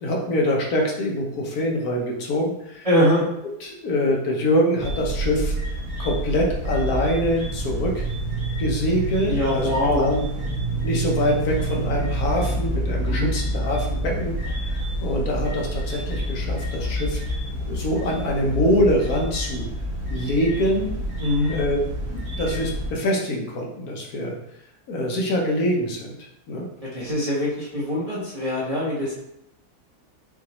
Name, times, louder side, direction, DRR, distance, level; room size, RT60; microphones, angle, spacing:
voice 1, 0.0-2.9 3.6-5.5 6.0-8.1 8.6-9.7 10.0-10.2 10.8-14.3 14.6-17.2 17.7-19.7 20.1-20.9 21.5-21.8 22.1-24.4 24.9-26.1 26.5-26.7, equal, 70° left, -1 dB, 1.3 m, -24 dB
voice 2, 2.8-3.2 9.3-10.1 13.1-13.3 21.2-21.6 26.9-29.1, equal, 25° right, -6 dB, 1.0 m, -23 dB
sound 1, 4.8-22.9, right 1 dB, 80° right, 2.1 m, -28 dB
5.9 x 2.5 x 3.0 m, 0.81 s
omnidirectional pair, 1.7 m